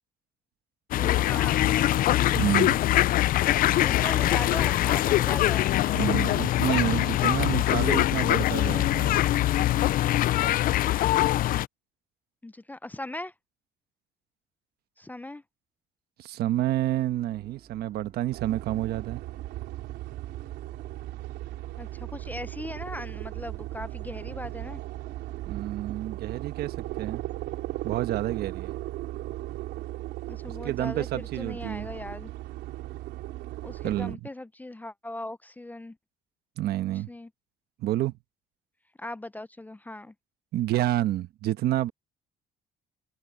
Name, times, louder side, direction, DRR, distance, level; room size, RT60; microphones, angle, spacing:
sound 1, 0.9-11.7, left 14 dB, 60° left, 0.4 m, -23 dB
voice 1, 1.0-2.4 3.8-6.0 12.4-13.3 15.0-15.4 21.8-24.8 30.3-32.3 33.6-36.0 37.1-37.3 39.0-40.1, left 1 dB, 10° left, 0.5 m, -39 dB
voice 2, 2.3-2.8 5.9-9.2 16.2-19.2 25.5-27.2 27.8-28.7 30.6-31.9 33.8-34.2 36.6-37.1 37.8-38.1 40.5-41.9, right 14 dB, 70° right, 1.2 m, -29 dB
sound 2, 16.4-28.3, right 8 dB, 50° right, 3.6 m, -52 dB
sound 3, 18.3-34.2, right 16 dB, 85° right, 3.5 m, -37 dB
cardioid pair, 110°, 17 cm